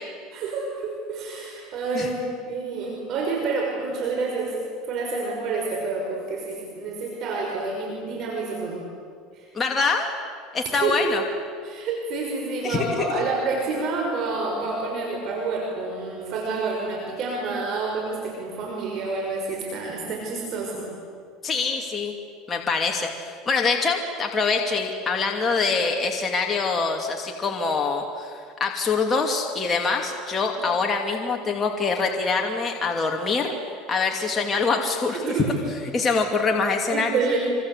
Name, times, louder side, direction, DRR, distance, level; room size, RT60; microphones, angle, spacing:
voice 1, 0.3-2.2 2.5-4.6 4.9-8.8 9.3-9.5 10.8-11.2 11.6-20.9 35.3-35.5 36.9-37.4, right 4 dB, 50° right, 0 dB, 5.9 m, -28 dB
voice 2, 9.5-10.1 10.5-11.2 12.6-13.2 21.4-22.2 22.5-33.5 33.9-35.3 35.9-37.2, left 4 dB, 25° left, 1 dB, 2.7 m, -24 dB
26.5 x 26.0 x 8.2 m, 2.1 s
supercardioid pair, 115°, 0 cm